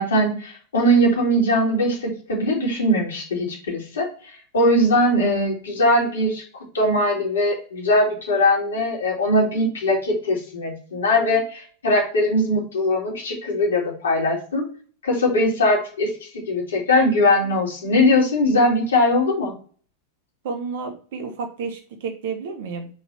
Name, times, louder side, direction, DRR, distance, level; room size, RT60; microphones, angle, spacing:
voice 1, 0.0-4.1 4.5-6.4 6.7-14.7 15.0-19.5, left 1 dB, 65° left, -2 dB, 2.7 m, -20 dB
voice 2, 20.4-22.9, right 5 dB, 55° right, 5 dB, 1.3 m, -31 dB
4.8 x 4.1 x 5.5 m, 0.42 s
figure-of-eight pair, 90°, 0 cm